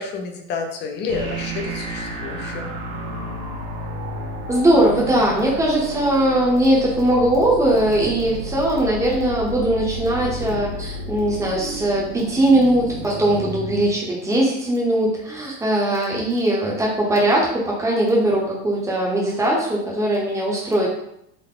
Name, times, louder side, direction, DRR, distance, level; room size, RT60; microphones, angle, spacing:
voice 1, 0.0-2.7, left 4 dB, 30° left, 3 dB, 0.5 m, -29 dB
sound 1, 1.1-13.8, right 1 dB, 85° right, 1.0 m, -31 dB
voice 2, 4.5-20.9, right 1 dB, 10° right, -4 dB, 0.8 m, -20 dB
3.8 x 2.0 x 3.8 m, 0.78 s
cardioid pair, 145°, 35 cm